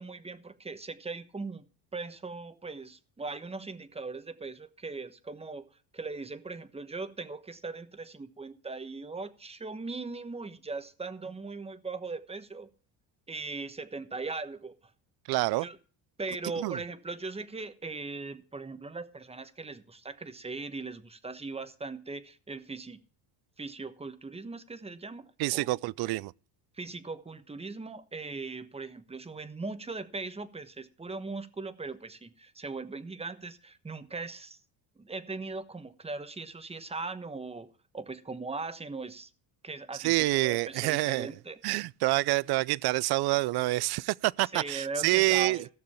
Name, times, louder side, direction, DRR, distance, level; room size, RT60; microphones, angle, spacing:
voice 1, 0.0-1.7 1.9-12.7 13.3-14.7 15.6-15.8 16.2-23.0 23.6-25.8 26.7-34.6 35.0-37.7 37.9-39.3 39.6-41.6 44.5-45.7, right 3 dB, 15° right, 1.1 m, -39 dB
voice 2, 15.3-15.7 16.6-16.8 25.4-26.3 40.0-41.3 41.6-45.6, right 20 dB, 55° right, 0.5 m, -27 dB
15.5 x 6.7 x 5.5 m
cardioid pair, 100°, 47 cm